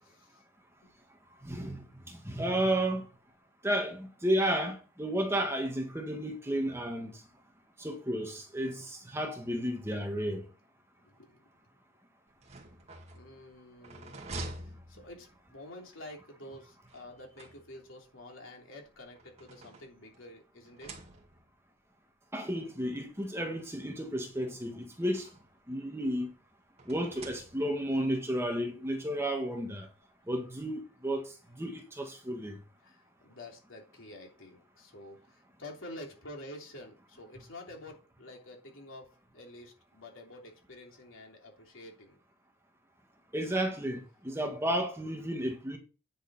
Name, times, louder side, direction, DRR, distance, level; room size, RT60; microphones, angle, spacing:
voice 1, 0.0-0.5 0.8-0.9 8.8-9.2 11.0-11.5 13.1-14.2 14.6-21.0 32.8-42.2, left 1 dB, 75° left, 3.3 m, -49 dB
voice 2, 1.4-3.0 3.6-7.1 7.8-10.4 22.3-25.3 25.7-26.3 26.9-29.9 30.3-31.3 31.6-32.6 43.3-45.8, right 1 dB, 15° right, 1.7 m, -32 dB
sound 1, 12.3-15.6 16.9-18.1 18.9-20.3 20.6-21.6 22.5-22.6 22.9-23.0 24.2-25.6 26.8-28.0, right 2 dB, 30° right, 2.0 m, -47 dB
10.0 x 6.4 x 4.3 m
head